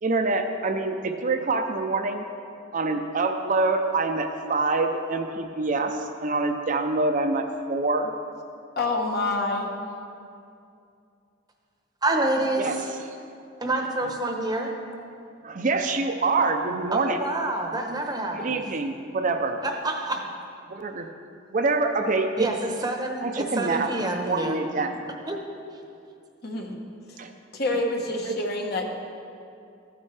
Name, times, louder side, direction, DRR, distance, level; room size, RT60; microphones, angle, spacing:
voice 1, 0.0-2.2 2.7-8.1 12.6-12.8 13.1-13.2 14.0-14.1 15.4-17.2 18.4-19.6 20.7-21.1 21.5-22.5 23.2-23.9 24.2-24.9 27.2-27.3 28.3-28.4, right 3 dB, 40° right, 5 dB, 0.6 m, -25 dB
voice 2, 8.8-9.7 20.1-20.2 26.4-26.8 27.5-28.9, left 2 dB, 55° left, 1 dB, 1.2 m, -27 dB
voice 3, 12.0-12.8 13.6-14.7 16.9-18.6 19.6-20.2 22.4-24.6 25.3-25.4, right 2 dB, 20° right, 2 dB, 0.9 m, -27 dB
14.5 x 9.6 x 3.3 m, 2.5 s
head